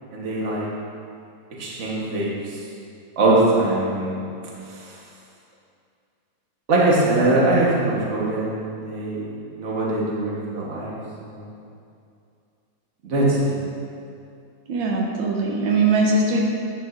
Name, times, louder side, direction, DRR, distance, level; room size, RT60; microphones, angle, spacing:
voice 1, 0.1-0.7 1.6-2.6 3.2-4.2 6.7-9.2 9.5-11.0 11.3-11.5 13.0-13.5, right 2 dB, 40° right, -5 dB, 1.4 m, -22 dB
voice 2, 14.7-16.4, right 3 dB, 85° right, -1 dB, 1.6 m, -21 dB
9.4 x 7.4 x 2.5 m, 2.5 s
omnidirectional pair, 2.1 m